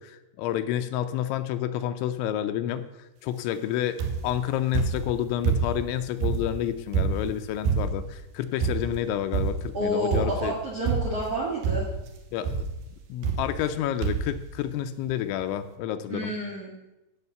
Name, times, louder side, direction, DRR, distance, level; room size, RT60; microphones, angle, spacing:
voice 1, 0.0-2.9 3.2-10.5 12.3-12.7 13.1-16.3, left 11 dB, 80° left, 10 dB, 2.9 m, -29 dB
sound 1, 4.0-4.4 4.7-5.9 6.2-8.1 8.6-9.0 9.3-9.8 10.1-10.5 10.9-11.3 11.6-12.1 12.4-12.8 13.2-13.8 14.0-14.4 15.1-15.2 15.4-15.5, right 5 dB, 70° right, 2.9 m, -27 dB
voice 2, 9.7-11.8 16.1-16.7, right 1 dB, 55° right, -2 dB, 1.7 m, -29 dB
15.5 x 5.4 x 6.9 m, 0.97 s
omnidirectional pair, 5.5 m